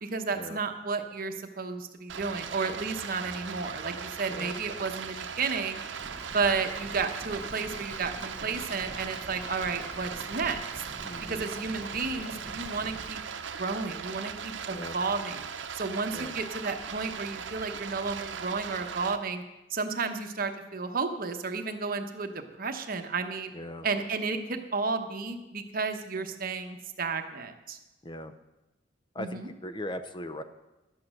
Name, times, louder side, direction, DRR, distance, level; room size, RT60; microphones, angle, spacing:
voice 1, 0.0-5.8 6.3-10.6 11.2-13.2 13.6-15.5 15.7-19.4 19.7-23.5 23.8-27.8 29.2-29.5, right 4 dB, 50° right, 6 dB, 1.0 m, -32 dB
Stream, 2.1-19.2, right 6 dB, 90° right, 0.7 m, -39 dB
sound 1, 6.0-13.1, right 1 dB, 15° right, 0.6 m, -46 dB
voice 2, 11.0-11.5 14.7-15.0 16.1-16.3 23.5-23.9 28.0-28.3 29.1-30.4, left 1 dB, 25° left, 9 dB, 0.6 m, -39 dB
12.0 x 8.6 x 6.4 m, 1.0 s
head